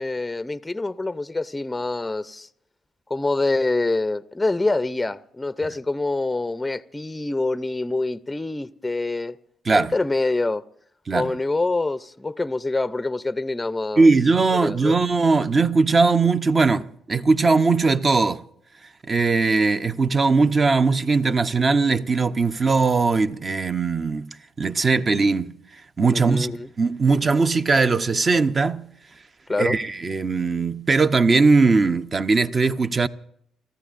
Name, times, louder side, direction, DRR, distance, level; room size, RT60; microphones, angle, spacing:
voice 1, 0.0-2.5 3.1-9.4 9.7-10.6 11.1-14.1 14.5-15.0 26.1-26.7 29.5-29.8, left 2 dB, 15° left, 0.5 m, -25 dB
voice 2, 14.0-18.4 19.0-24.3 24.6-25.5 26.0-26.5 26.8-28.9 29.6-33.1, right 4 dB, 35° right, 0.7 m, -19 dB
29.5 x 14.5 x 2.6 m
cardioid pair, 90°, 0 cm